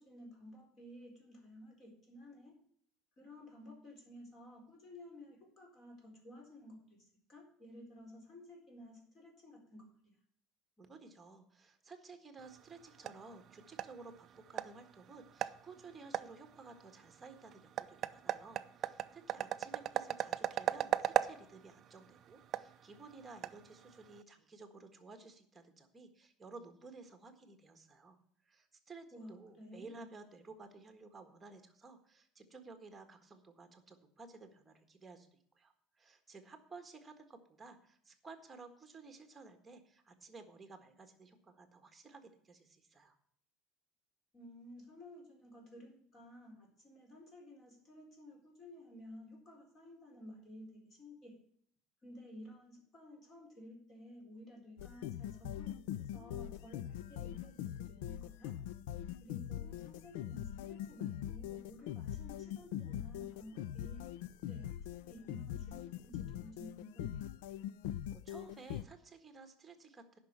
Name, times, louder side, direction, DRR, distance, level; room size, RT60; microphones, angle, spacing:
voice 1, 0.0-2.6 3.2-10.0 29.1-30.1 44.3-51.3 52.0-58.5 59.2-64.1 64.5-67.1, left 1 dB, 30° left, 1 dB, 4.1 m, -54 dB
voice 2, 10.8-28.2 28.4-43.2 68.1-70.2, right 3 dB, 15° right, 7 dB, 1.6 m, -55 dB
sound 1, 12.4-24.2, right 11 dB, 35° right, 0.5 m, -39 dB
sound 2, 54.8-68.8, left 11 dB, 85° left, 0.5 m, -42 dB
9.9 x 6.0 x 8.7 m, 0.64 s
cardioid pair, 155°, 0 cm